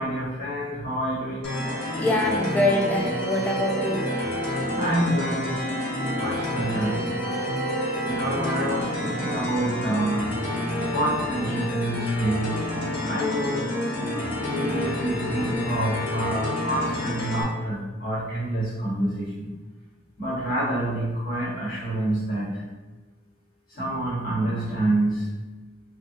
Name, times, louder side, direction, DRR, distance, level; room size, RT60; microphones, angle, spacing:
voice 1, 0.0-1.6 4.8-5.6 6.2-7.1 8.0-10.3 10.9-19.5 20.2-22.6 23.7-25.3, right 1 dB, 50° left, -7 dB, 1.1 m, -27 dB
sound 1, 1.4-17.4, left 1 dB, 70° left, 1.1 m, -28 dB
voice 2, 2.0-4.0, left 1 dB, 10° left, -1 dB, 0.4 m, -24 dB
3.4 x 2.2 x 2.6 m, 1.2 s
head